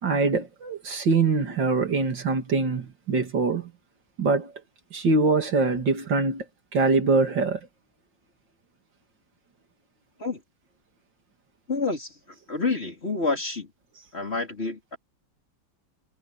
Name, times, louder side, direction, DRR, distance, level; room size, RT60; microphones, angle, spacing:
voice 1, 0.0-3.7 4.2-4.5 4.9-6.4 6.7-7.6, right 3 dB, 75° right, 3.2 m, -23 dB
voice 2, 11.7-12.2 12.5-13.7 14.1-15.0, left 3 dB, 35° left, 3.9 m, -28 dB
omnidirectional pair, 2.0 m